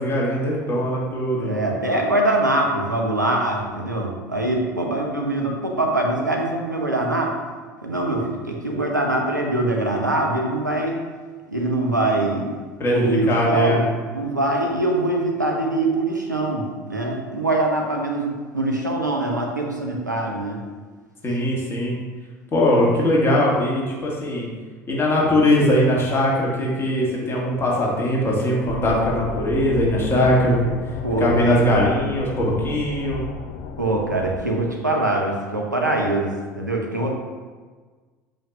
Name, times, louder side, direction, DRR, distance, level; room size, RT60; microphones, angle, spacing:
voice 1, 0.0-1.5 12.8-13.8 21.2-22.0 22.5-24.5 24.9-30.7 31.2-33.2, left 1 dB, 25° left, -4 dB, 1.8 m, -20 dB
voice 2, 1.4-7.3 7.8-11.0 11.5-12.6 12.9-13.8 14.1-20.6 31.0-31.6 33.8-36.3 36.6-37.1, right 2 dB, 90° right, 0 dB, 0.8 m, -23 dB
sound 1, 28.7-34.4, left 5 dB, 45° left, 0.5 m, -33 dB
7.2 x 5.1 x 2.7 m, 1.4 s
figure-of-eight pair, 70°, 10 cm